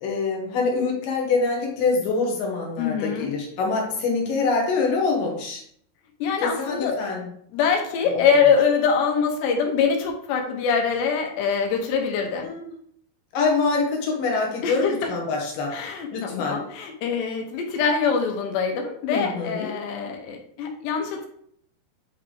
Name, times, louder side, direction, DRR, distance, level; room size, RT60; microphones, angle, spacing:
voice 1, 0.0-5.6 6.4-7.3 8.0-8.4 12.4-12.7 13.3-15.7 16.1-16.6 19.1-19.8, left 4 dB, 70° left, 0 dB, 2.4 m, -25 dB
voice 2, 2.8-3.3 6.2-7.0 7.5-12.5 14.6-15.1 15.7-21.3, left 6 dB, 85° left, 2 dB, 3.1 m, -24 dB
8.8 x 3.4 x 3.4 m, 0.65 s
omnidirectional pair, 5.0 m